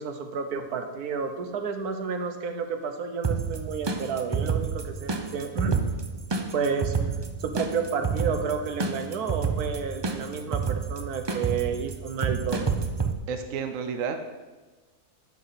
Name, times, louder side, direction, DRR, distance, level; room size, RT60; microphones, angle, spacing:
voice 1, 0.0-5.8 6.5-6.9 7.4-12.8, right 5 dB, 85° right, 6 dB, 1.5 m, -31 dB
sound 1, 3.2-13.1, right 5 dB, 45° right, 0.3 m, -29 dB
voice 2, 13.3-14.3, right 5 dB, 65° right, 7 dB, 1.1 m, -31 dB
13.0 x 6.2 x 5.8 m, 1.2 s
omnidirectional pair, 1.6 m